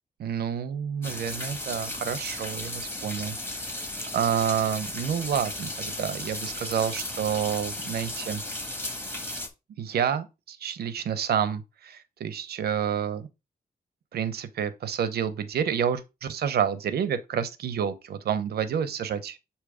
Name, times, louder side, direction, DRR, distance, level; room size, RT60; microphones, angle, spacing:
voice 1, 0.2-8.4 9.8-13.3 14.1-19.4, right 8 dB, 90° right, 0.9 m, -29 dB
sound 1, 1.0-9.5, left 1 dB, 15° left, 1.4 m, -35 dB
8.1 x 2.9 x 4.9 m
wide cardioid pair, 150°, 16 cm